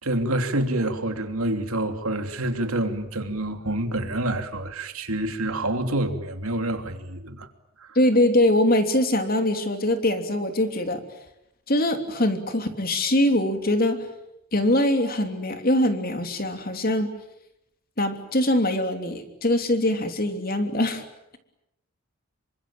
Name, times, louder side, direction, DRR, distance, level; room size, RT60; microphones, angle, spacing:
voice 1, 0.0-7.5, right 1 dB, 85° right, 3.1 m, -27 dB
voice 2, 7.9-11.0 11.7-14.0 14.5-17.1 18.0-21.0, left 1 dB, 45° left, 3.2 m, -22 dB
27.5 x 24.5 x 8.9 m
head